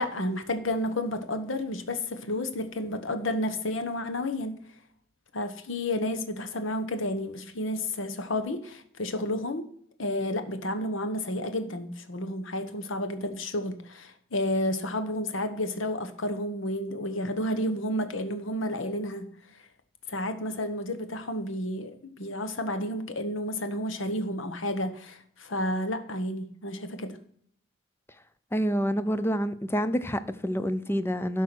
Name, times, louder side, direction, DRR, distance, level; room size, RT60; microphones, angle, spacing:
voice 1, 0.0-4.5 5.3-9.7 10.0-19.2 20.1-27.1, left 1 dB, 70° left, 1.1 m, -31 dB
voice 2, 28.5-31.4, equal, 10° left, 0.5 m, -27 dB
12.0 x 4.7 x 6.1 m
head